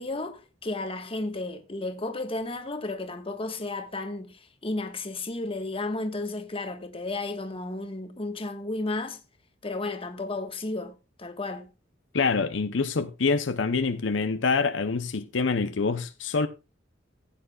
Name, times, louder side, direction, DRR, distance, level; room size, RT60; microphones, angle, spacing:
voice 1, 0.0-9.2 9.6-11.7, left 2 dB, 30° left, 1.4 m, -33 dB
voice 2, 12.1-16.5, left 4 dB, 70° left, 0.7 m, -26 dB
15.5 x 9.2 x 2.4 m
head